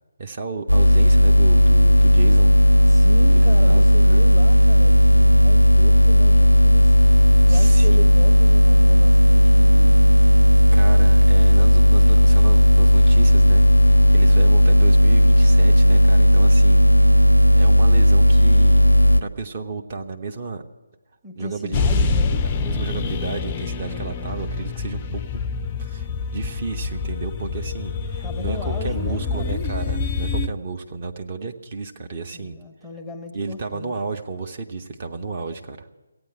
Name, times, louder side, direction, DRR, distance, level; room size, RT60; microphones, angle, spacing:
voice 1, 0.2-2.5 3.2-3.8 4.1-4.2 7.5-8.0 10.7-16.9 17.5-18.8 19.2-20.6 21.4-22.1 22.6-25.4 25.8-26.1 26.3-32.6 33.3-35.9, right 4 dB, 35° right, 4 dB, 0.9 m, -32 dB
sound 1, 0.7-19.2, equal, 85° left, 0.5 m, -14 dB
voice 2, 2.9-6.9 7.5-10.2 21.2-22.4 28.2-29.6 32.3-34.0, equal, 5° right, 2 dB, 0.8 m, -37 dB
sound 2, 21.7-30.5, left 4 dB, 20° left, 0.4 m, -26 dB
15.0 x 9.0 x 9.5 m, 1.2 s
figure-of-eight pair, 150°, 0 cm